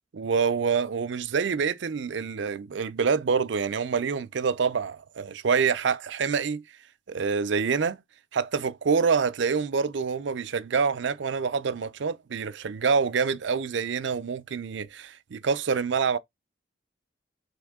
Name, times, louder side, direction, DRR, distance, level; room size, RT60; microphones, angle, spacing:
voice 1, 0.1-6.6 7.1-8.0 8.3-16.2, right 5 dB, 70° right, 0.5 m, -26 dB
4.2 x 3.4 x 3.5 m
head